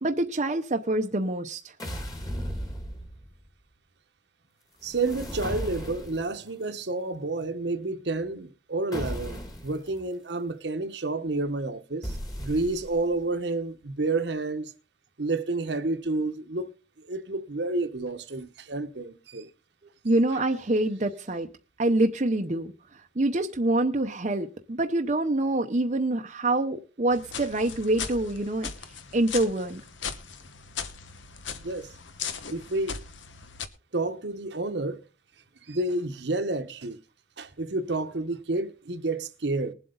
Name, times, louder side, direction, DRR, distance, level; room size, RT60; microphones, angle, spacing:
voice 1, 0.0-1.6 20.0-21.5 21.8-22.7 23.2-28.7 29.1-29.8, right 2 dB, 40° right, 0.8 m, -26 dB
sound 1, 1.8-3.4 4.8-6.4 8.9-9.8 12.0-13.1, equal, 20° left, 2.2 m, -36 dB
voice 2, 4.8-14.7 15.2-16.7 17.1-19.5 31.6-31.9 32.5-33.0 33.9-35.0 35.7-37.0 37.4-39.7, right 2 dB, 65° right, 1.1 m, -30 dB
sound 2, 27.1-33.7, left 6 dB, 80° left, 1.1 m, -38 dB
20.5 x 7.9 x 3.9 m
head